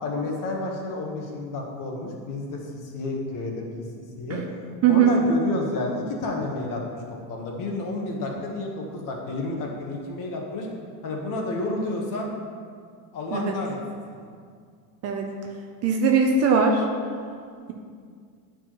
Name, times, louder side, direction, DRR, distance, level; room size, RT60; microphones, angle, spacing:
voice 1, 0.0-4.4 4.9-7.0 7.3-10.7 11.0-12.3 13.1-13.8 14.1-14.3, left 2 dB, 45° left, 0 dB, 1.2 m, -30 dB
voice 2, 15.8-16.8, right 6 dB, 35° right, 2 dB, 0.5 m, -20 dB
10.0 x 4.6 x 3.0 m, 2.1 s
cardioid pair, 150°, 45 cm